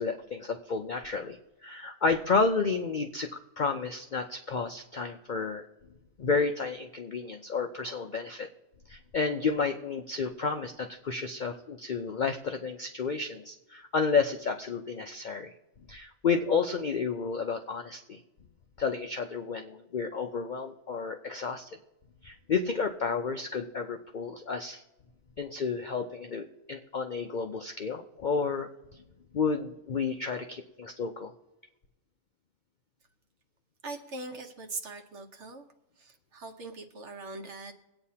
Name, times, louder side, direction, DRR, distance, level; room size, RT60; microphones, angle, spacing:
voice 1, 0.0-5.7 6.2-8.5 8.9-15.5 15.9-18.2 18.8-21.8 22.2-24.8 25.4-28.7 29.3-31.3, left 4 dB, 55° left, 5 dB, 0.5 m, -31 dB
voice 2, 33.8-35.6 36.0-37.7, right 3 dB, 55° right, 5 dB, 1.3 m, -41 dB
22.5 x 8.9 x 2.8 m, 0.98 s
omnidirectional pair, 1.5 m